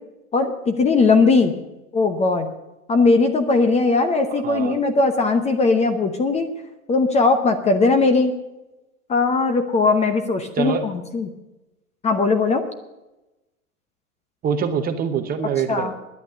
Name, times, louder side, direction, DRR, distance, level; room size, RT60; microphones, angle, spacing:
voice 1, 0.3-1.5 1.9-2.5 2.9-6.5 6.9-8.3 9.1-11.3 12.0-12.6 15.7-15.9, left 3 dB, 15° left, 8 dB, 0.9 m, -19 dB
voice 2, 4.4-4.8 10.6-10.9 14.4-15.9, right 7 dB, 20° right, 7 dB, 0.9 m, -24 dB
11.0 x 8.6 x 9.5 m, 1.0 s
hypercardioid pair, 120°, 44 cm